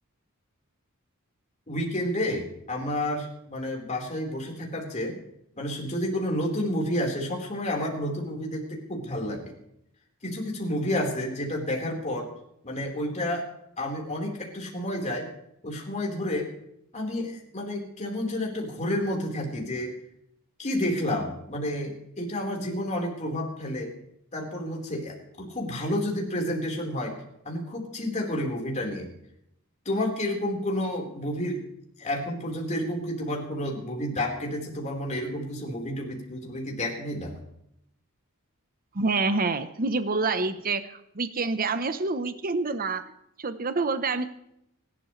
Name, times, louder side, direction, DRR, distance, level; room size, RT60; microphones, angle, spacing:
voice 1, 1.7-5.2 5.6-9.5 10.2-12.3 12.6-13.5 13.8-15.3 15.6-16.5 16.9-20.0 20.6-23.9 24.3-27.2 27.4-29.1 29.8-31.6 32.0-37.4, left 1 dB, 30° left, 0 dB, 4.3 m, -30 dB
voice 2, 38.9-43.0 43.4-44.2, right 3 dB, 40° right, 11 dB, 0.9 m, -27 dB
25.5 x 12.5 x 3.3 m, 0.78 s
head